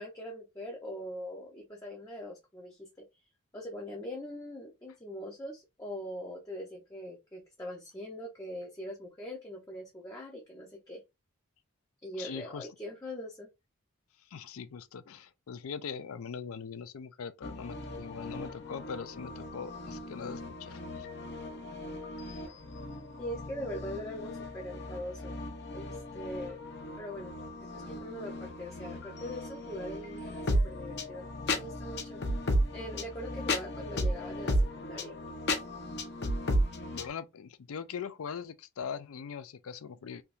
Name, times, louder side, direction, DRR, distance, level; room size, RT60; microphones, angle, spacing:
voice 1, 0.0-2.9 3.5-11.0 12.0-13.5 23.2-25.3 25.7-26.6 27.0-27.3 27.6-32.2 32.7-35.2, equal, 15° left, 0.6 m, -42 dB
voice 2, 12.2-12.7 14.3-21.1 36.9-40.2, left 6 dB, 75° left, 0.4 m, -41 dB
sound 1, 17.4-37.1, equal, 50° left, 0.7 m, -35 dB
3.4 x 2.8 x 2.5 m
head